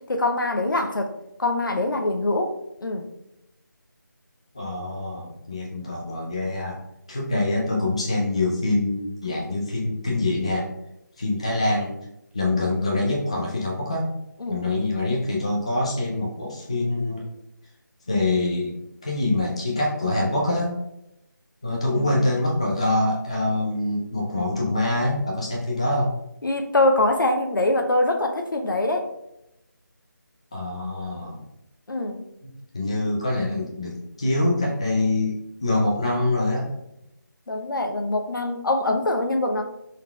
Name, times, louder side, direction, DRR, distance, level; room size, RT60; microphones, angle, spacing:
voice 1, 0.1-1.1 1.4-2.5 2.8-3.1 14.4-14.6 21.7-22.1 26.4-29.1 31.9-32.2 37.5-39.6, left 2 dB, 85° left, 4 dB, 0.6 m, -23 dB
voice 2, 4.5-6.8 7.1-10.7 11.2-12.0 12.3-14.1 14.5-17.2 18.1-18.7 19.0-20.8 21.6-26.2 30.5-31.4 32.4-36.7, left 2 dB, 20° left, -3 dB, 0.4 m, -25 dB
4.1 x 3.8 x 2.2 m, 0.85 s
figure-of-eight pair, 170°, 11 cm